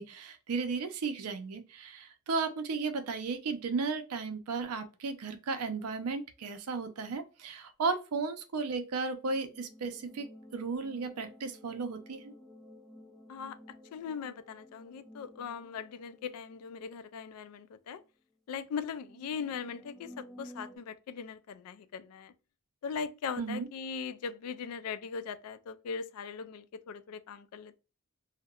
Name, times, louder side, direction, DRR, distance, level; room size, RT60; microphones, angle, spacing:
voice 1, 0.0-10.3 10.5-12.3 23.4-23.7, right 4 dB, 85° right, 0.5 m, -34 dB
sound 1, 9.2-17.5 17.9-18.0 19.0-20.8, left 1 dB, ahead, 0.3 m, -53 dB
voice 2, 13.9-18.0 18.5-22.3 22.8-27.8, left 6 dB, 75° left, 0.3 m, -40 dB
2.7 x 2.1 x 2.3 m
head